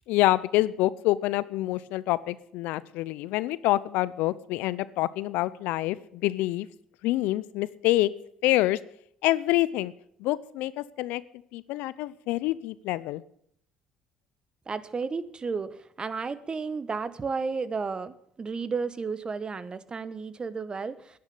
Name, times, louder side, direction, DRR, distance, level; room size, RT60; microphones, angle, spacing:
voice 1, 0.1-6.7 7.0-8.1 8.4-8.8 9.2-9.9 10.2-11.2 11.5-13.2, left 17 dB, 75° left, 19 dB, 0.6 m, -26 dB
voice 2, 14.7-21.2, right 4 dB, 35° right, 16 dB, 1.1 m, -33 dB
10.5 x 10.5 x 8.6 m, 0.68 s
supercardioid pair, 65°, 3 cm